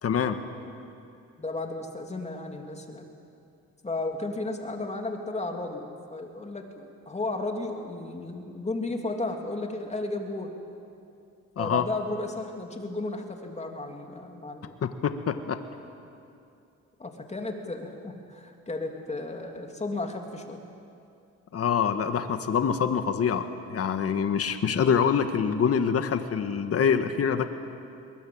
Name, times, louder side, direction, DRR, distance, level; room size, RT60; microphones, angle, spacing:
voice 1, 0.0-0.4 11.6-11.8 14.8-15.6 21.5-27.5, left 7 dB, 50° left, 8 dB, 1.6 m, -25 dB
voice 2, 1.4-3.1 3.8-10.5 11.6-14.7 17.0-20.6, left 2 dB, 20° left, 3 dB, 3.1 m, -34 dB
22.0 x 21.0 x 8.8 m, 2.6 s
cardioid pair, 90°, 30 cm